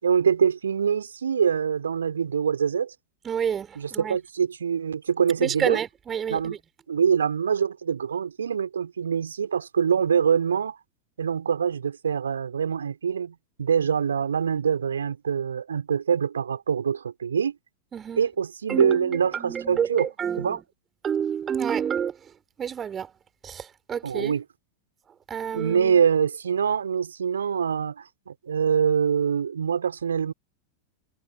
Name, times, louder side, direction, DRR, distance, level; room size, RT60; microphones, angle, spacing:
voice 1, 0.0-2.9 3.8-5.8 6.3-6.6 6.9-10.8 11.2-17.6 18.2-20.1 20.4-20.6 24.0-24.4 25.4-30.3, right 7 dB, 70° right, 3.8 m, -24 dB
voice 2, 3.2-4.2 5.4-6.6 17.9-18.2 18.7-20.6 21.0-22.2 22.6-23.1 23.4-24.4 25.3-26.0, right 8 dB, 25° right, 3.3 m, -29 dB
figure-of-eight pair, 90°, 0 cm